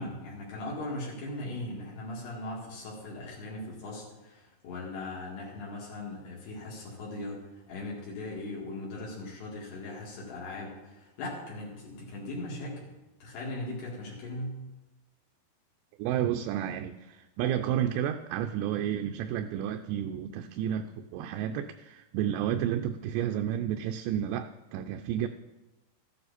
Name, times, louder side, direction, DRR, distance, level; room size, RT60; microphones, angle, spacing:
voice 1, 0.0-12.9 13.2-14.6, left 2 dB, 70° left, -5 dB, 4.1 m, -39 dB
voice 2, 16.0-25.3, right 10 dB, 85° right, 6 dB, 2.7 m, -31 dB
14.0 x 9.5 x 4.2 m, 1.0 s
omnidirectional pair, 5.0 m